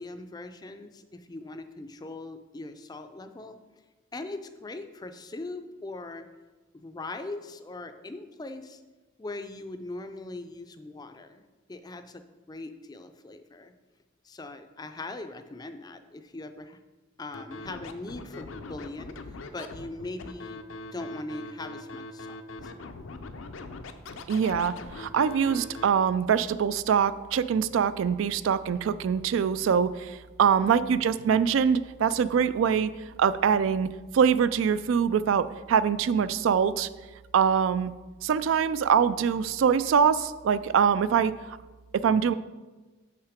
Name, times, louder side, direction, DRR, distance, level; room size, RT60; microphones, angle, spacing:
voice 1, 0.0-3.6 4.1-6.3 6.7-8.8 9.2-11.4 11.7-13.7 14.2-16.8 17.2-19.2 19.5-20.6 20.9-22.4 22.6-22.7, left 2 dB, 20° left, 9 dB, 0.4 m, -40 dB
Scratching (performance technique), 17.3-25.8, left 3 dB, 80° left, 0.6 m, -41 dB
voice 2, 24.3-32.9 33.2-33.9 34.1-36.9 37.3-37.9 38.2-41.6 41.9-42.3, right 7 dB, 75° right, 15 dB, 0.3 m, -24 dB
6.6 x 5.8 x 5.0 m, 1.2 s
head